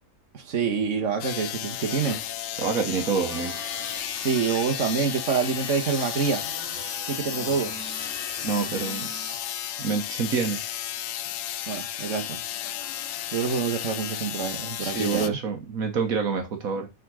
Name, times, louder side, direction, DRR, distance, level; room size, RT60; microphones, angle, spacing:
voice 1, 0.3-2.2 4.2-6.4 7.1-7.7 11.7-12.4 13.3-15.4, right 6 dB, 60° right, 1.7 m, -27 dB
sound 1, 1.2-15.3, left 11 dB, 70° left, 0.9 m, -33 dB
voice 2, 2.6-3.6 8.4-9.1 9.8-10.6 14.6-16.9, right 5 dB, 75° right, 1.6 m, -27 dB
sound 2, 3.3-9.4, right 1 dB, 10° right, 2.2 m, -41 dB
7.7 x 3.8 x 6.2 m
omnidirectional pair, 1.5 m